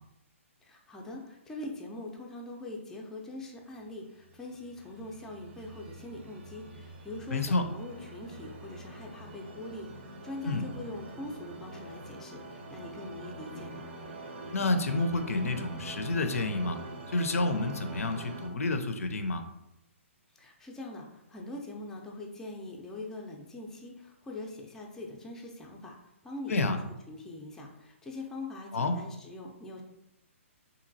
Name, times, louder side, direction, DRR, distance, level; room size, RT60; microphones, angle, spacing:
voice 1, 0.6-13.9 20.4-26.0 26.2-26.8 27.1-29.8, left 2 dB, 5° left, -1 dB, 0.3 m, -43 dB
sound 1, 4.1-18.5, right 2 dB, 55° right, 0.5 m, -45 dB
voice 2, 7.3-7.6 10.4-10.7 14.5-16.8 17.1-19.4 26.5-26.8 28.7-29.0, left 2 dB, 90° left, 8 dB, 0.4 m, -29 dB
3.0 x 2.6 x 2.6 m, 0.86 s
hypercardioid pair, 145°, 7 cm